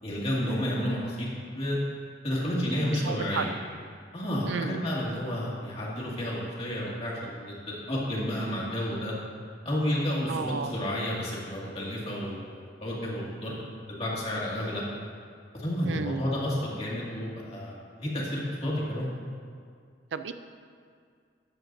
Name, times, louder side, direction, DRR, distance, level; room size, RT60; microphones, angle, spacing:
voice 1, 0.0-1.8 2.2-3.5 4.1-7.6 7.9-9.1 9.6-13.6 13.9-14.8 15.5-19.1, equal, 35° left, -5 dB, 2.1 m, -31 dB
voice 2, 2.9-3.4 4.5-4.8 10.3-10.8 15.8-16.2 20.1-20.3, right 5 dB, 80° right, 9 dB, 0.5 m, -32 dB
13.5 x 8.8 x 2.7 m, 2.2 s
head